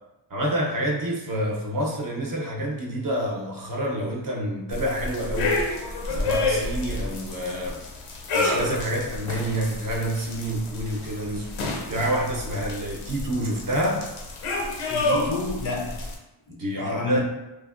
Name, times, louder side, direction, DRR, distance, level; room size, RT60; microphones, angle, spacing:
voice 1, 0.3-5.8 6.1-7.8 8.3-11.5 11.9-14.1 16.5-17.2, right 1 dB, 45° right, -1 dB, 0.6 m, -28 dB
sound 1, 4.7-16.1, left 2 dB, 85° left, 0.7 m, -29 dB
voice 2, 14.9-16.0 16.5-17.2, left 4 dB, 45° left, 0 dB, 0.5 m, -30 dB
3.1 x 2.1 x 2.4 m, 0.98 s
wide cardioid pair, 115°, 49 cm